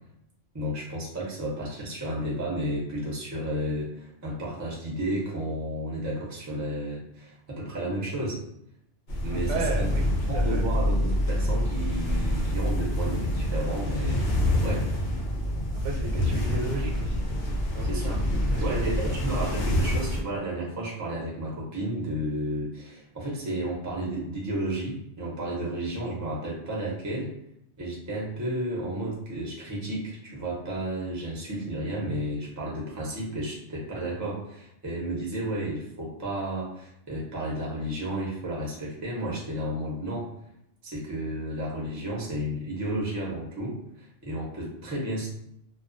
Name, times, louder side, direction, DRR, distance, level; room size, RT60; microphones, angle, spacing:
voice 1, 0.5-8.4 9.2-9.9 10.3-14.9 17.9-18.2 18.6-27.3 27.8-40.3 40.8-45.3, right 1 dB, 25° right, -4 dB, 0.4 m, -32 dB
sound 1, 9.1-20.2, left 1 dB, 70° left, 0.8 m, -26 dB
voice 2, 9.3-10.1 10.3-10.6 15.8-17.2 17.7-18.1 18.5-19.0, right 2 dB, 75° right, 0 dB, 0.9 m, -33 dB
2.2 x 2.2 x 2.5 m, 0.76 s
omnidirectional pair, 1.3 m